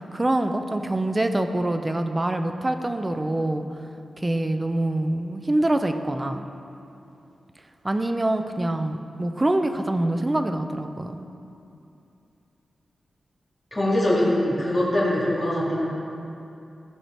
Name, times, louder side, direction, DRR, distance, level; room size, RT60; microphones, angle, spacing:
voice 1, 0.1-3.7 4.2-6.4 7.8-11.3, right 1 dB, 20° right, 7 dB, 0.4 m, -25 dB
voice 2, 13.7-15.8, left 1 dB, 5° left, -9 dB, 2.3 m, -22 dB
14.0 x 4.9 x 4.4 m, 2.7 s
wide cardioid pair, 145°, 0 cm